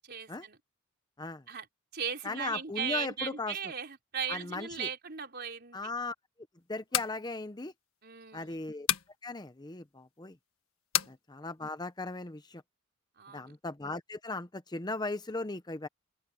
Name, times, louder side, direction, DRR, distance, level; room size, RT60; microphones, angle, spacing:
voice 1, 0.0-0.6 1.5-1.7 1.9-5.9 8.0-8.6 11.0-11.1 13.2-13.5, right 7 dB, 50° right, 4.2 m, -38 dB
voice 2, 2.2-3.5 4.3-4.9 5.7-6.1 6.7-7.7 8.3-8.9 9.2-10.4 11.1-12.6 13.3-15.9, left 3 dB, 20° left, 0.7 m, -37 dB
sound 1, 6.9-7.2 8.9-9.1 10.9-11.2, left 11 dB, 85° left, 1.7 m, -29 dB
open air
head